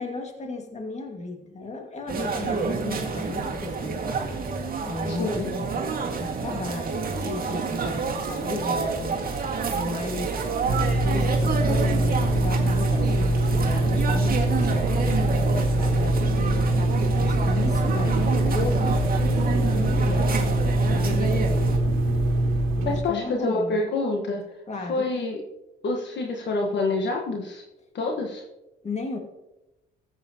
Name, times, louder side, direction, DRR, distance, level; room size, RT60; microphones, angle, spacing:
voice 1, 0.0-4.0 4.8-9.2 9.7-10.4 10.6-16.4 17.1-20.4 20.9-21.7 22.8-23.8 24.7-25.1 28.8-29.2, left 3 dB, 35° left, 3 dB, 2.0 m, -35 dB
sound 1, 2.1-21.8, right 4 dB, 50° right, 1.9 m, -29 dB
voice 2, 5.1-5.5 22.8-24.4 24.9-25.4 25.8-27.6 27.9-28.4, left 3 dB, 65° left, 2 dB, 1.3 m, -27 dB
sound 2, 10.6-23.0, right 1 dB, 85° right, 1.5 m, -23 dB
14.0 x 7.8 x 2.9 m, 0.95 s
cardioid pair, 90°, 20 cm